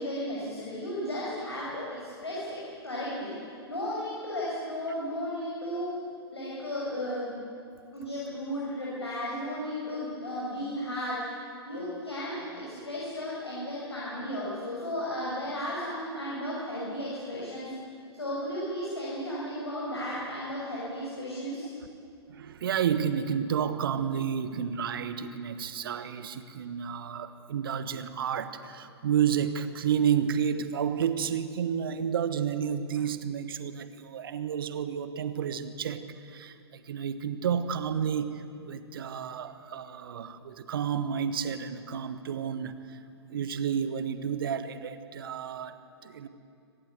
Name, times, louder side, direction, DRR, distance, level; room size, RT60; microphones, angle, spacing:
voice 1, 0.0-3.3 3.7-5.9 6.3-7.3 7.9-11.3 11.7-17.7 18.1-21.7, equal, 75° left, -6 dB, 6.9 m, -34 dB
voice 2, 22.3-43.0 43.3-46.3, right 8 dB, 55° right, 11 dB, 1.5 m, -31 dB
25.0 x 18.5 x 8.3 m, 2.5 s
figure-of-eight pair, 110°, 14 cm